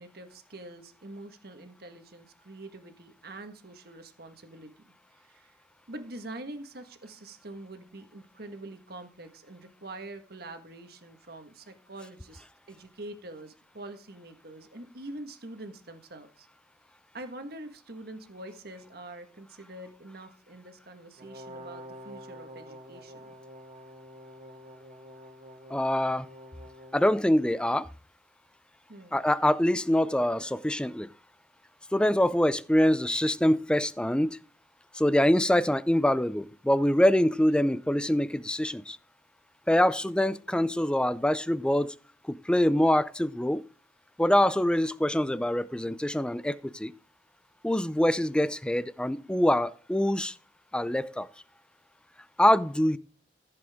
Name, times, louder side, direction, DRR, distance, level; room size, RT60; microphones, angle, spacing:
voice 1, 0.0-5.6 5.9-16.5 17.1-23.4 28.9-29.2, right 2 dB, 60° right, 1.6 m, -45 dB
Brass instrument, 21.2-27.0, equal, 45° right, 2.0 m, -47 dB
voice 2, 25.7-26.3 26.9-27.9 29.1-31.1 31.9-34.4 34.9-39.0 39.7-41.9 42.3-43.6 44.2-46.9 47.6-50.3 50.7-51.3 52.4-53.0, left 1 dB, 5° left, 0.4 m, -24 dB
14.5 x 7.8 x 3.6 m
head